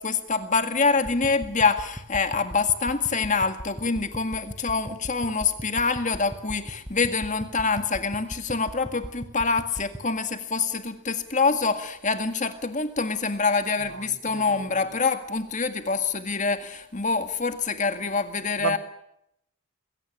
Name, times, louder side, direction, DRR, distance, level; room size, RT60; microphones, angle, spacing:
voice 1, 0.0-18.8, left 4 dB, 35° left, 1.9 m, -25 dB
sound 1, 1.0-10.0, equal, 5° right, 1.5 m, -41 dB
voice 2, 13.8-14.9 18.6-18.8, right 5 dB, 60° right, 1.3 m, -34 dB
21.5 x 17.0 x 10.0 m
head